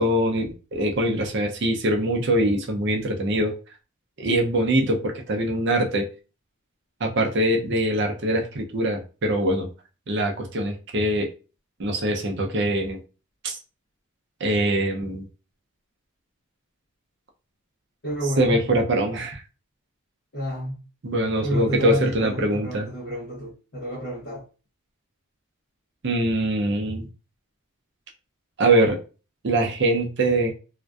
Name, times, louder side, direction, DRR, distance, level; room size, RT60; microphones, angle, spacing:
voice 1, 0.0-3.5 4.2-6.1 7.0-9.7 10.1-11.3 11.8-13.0 13.4-13.6 14.4-15.3 18.4-19.4 21.0-22.9 26.0-27.1 28.6-29.0 29.4-30.5, right 1 dB, 55° right, 0.5 m, -23 dB
voice 2, 18.0-18.6 20.3-20.8 21.4-24.4, equal, 55° left, 0.7 m, -30 dB
2.5 x 2.1 x 2.2 m
head